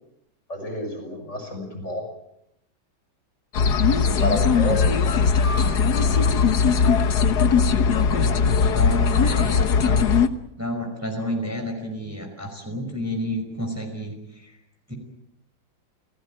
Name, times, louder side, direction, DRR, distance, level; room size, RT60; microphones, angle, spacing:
voice 1, 0.5-2.0 4.0-5.2, left 1 dB, 35° left, 4 dB, 6.4 m, -30 dB
sound 1, 3.5-10.3, left 5 dB, 55° left, 1.7 m, -19 dB
voice 2, 8.1-10.1 10.6-14.6 14.9-15.0, equal, 5° right, 2 dB, 5.3 m, -31 dB
29.5 x 17.0 x 9.1 m, 0.80 s
omnidirectional pair, 2.2 m